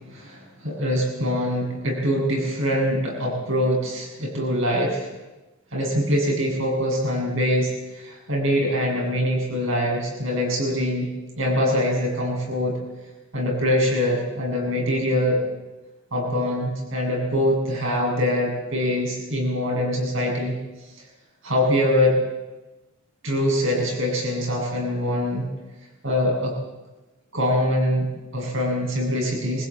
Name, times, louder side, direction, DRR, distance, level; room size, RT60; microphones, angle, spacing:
voice 1, 0.1-5.1 5.7-7.7 8.0-11.1 11.4-12.8 13.3-15.4 16.1-20.5 21.4-22.2 23.2-25.4 26.0-26.5 27.3-29.7, equal, 60° right, -1 dB, 7.9 m, -23 dB
23.0 x 16.0 x 8.9 m, 1.1 s
head